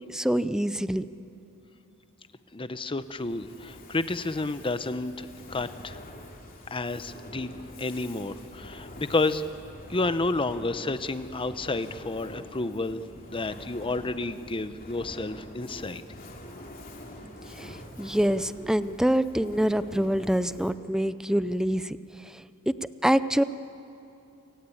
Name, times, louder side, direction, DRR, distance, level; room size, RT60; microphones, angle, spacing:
voice 1, 0.1-1.1 17.5-22.7 23.0-23.4, equal, 5° right, 14 dB, 0.5 m, -26 dB
voice 2, 2.5-6.0 6.7-7.5 7.8-9.4 9.9-13.0 13.3-16.1, left 2 dB, 25° left, 12 dB, 0.8 m, -30 dB
Fire, 3.0-20.9, left 1 dB, 40° left, 2.9 m, -45 dB
28.5 x 18.5 x 8.6 m, 2.8 s
head